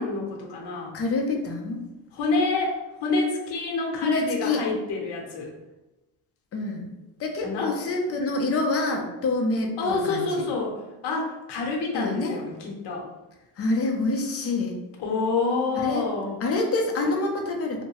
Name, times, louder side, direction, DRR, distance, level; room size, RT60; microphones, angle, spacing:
voice 1, 0.0-0.9 2.1-5.5 7.4-7.7 9.8-13.1 15.0-16.4, left 3 dB, 65° left, 0 dB, 0.9 m, -27 dB
voice 2, 0.9-1.8 4.0-4.6 6.5-6.9 7.2-10.5 11.9-12.4 13.6-14.8 15.8-16.1 16.4-17.8, left 2 dB, 35° left, 1 dB, 0.6 m, -26 dB
2.7 x 2.1 x 2.9 m, 1.0 s
cardioid pair, 110°, 44 cm